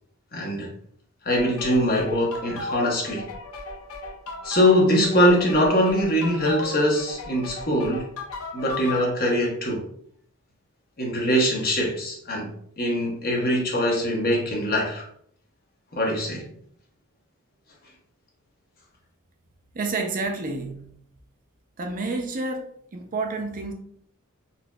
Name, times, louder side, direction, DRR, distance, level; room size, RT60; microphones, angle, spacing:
voice 1, 0.3-0.7 1.2-3.3 4.4-8.1 8.5-9.8 11.0-12.5 12.8-15.0 15.9-16.4, equal, 45° left, 0.9 m, -22 dB
sound 1, 1.3-9.1, left 3 dB, 85° left, 0.6 m, -36 dB
voice 2, 19.7-20.9 21.8-23.7, right 3 dB, 40° right, 0.5 m, -29 dB
4.0 x 2.6 x 2.3 m
head